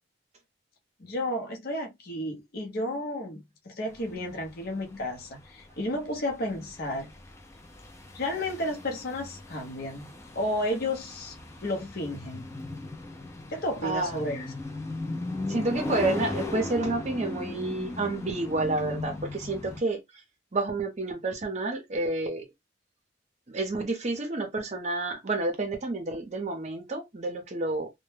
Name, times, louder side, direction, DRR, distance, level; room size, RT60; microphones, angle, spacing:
voice 1, 1.0-7.1 8.1-11.4 11.6-12.4 13.5-14.5, left 1 dB, 55° left, 0.7 m, -32 dB
sound 1, 3.9-19.8, left 2 dB, 15° left, 0.4 m, -37 dB
voice 2, 13.8-14.2 15.5-20.0 20.5-22.4 23.5-27.9, right 2 dB, 35° right, 0.6 m, -29 dB
2.1 x 2.1 x 3.2 m
head